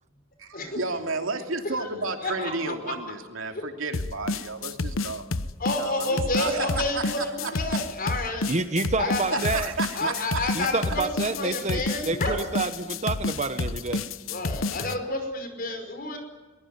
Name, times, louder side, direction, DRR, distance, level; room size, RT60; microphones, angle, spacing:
voice 1, 0.4-5.2 5.7-7.8 9.2-11.0, right 3 dB, 75° right, 5 dB, 2.9 m, -32 dB
voice 2, 2.2-2.5 5.6-8.5 9.0-9.4 9.9-11.1 11.4-12.4 14.3-16.2, left 2 dB, 45° left, 6 dB, 5.5 m, -29 dB
sound 1, 3.9-15.0, left 3 dB, 75° left, 1.1 m, -29 dB
voice 3, 8.5-9.7 10.5-14.0, right 3 dB, 35° right, 10 dB, 1.1 m, -28 dB
22.5 x 21.0 x 9.5 m, 1.2 s
head